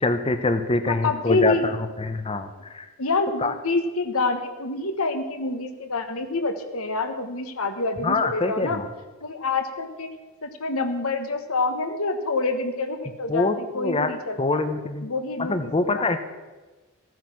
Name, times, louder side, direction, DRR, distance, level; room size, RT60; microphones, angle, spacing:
voice 1, 0.0-2.9 3.4-3.5 8.0-8.9 13.3-14.1 14.4-15.1 15.5-16.2, left 3 dB, 25° left, 9 dB, 0.7 m, -24 dB
voice 2, 0.9-1.6 3.0-8.8 9.2-10.1 10.4-14.6 15.0-16.2, left 3 dB, 70° left, 7 dB, 1.2 m, -27 dB
14.5 x 9.4 x 6.0 m, 1.2 s
head